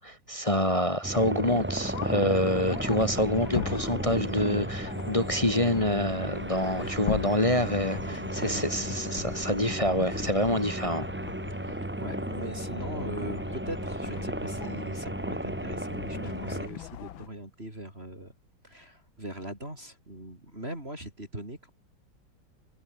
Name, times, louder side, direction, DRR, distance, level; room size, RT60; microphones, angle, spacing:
voice 1, 0.0-11.1, left 1 dB, 15° left, 1.5 m, -27 dB
sound 1, 1.0-16.7, right 1 dB, 10° right, 0.6 m, -34 dB
sound 2, 1.8-17.3, left 11 dB, 65° left, 1.8 m, -40 dB
voice 2, 6.6-7.0 8.0-8.7 11.6-11.7 12.0-18.3 18.6-21.7, right 1 dB, 25° right, 7.0 m, -41 dB
omnidirectional pair, 2.4 m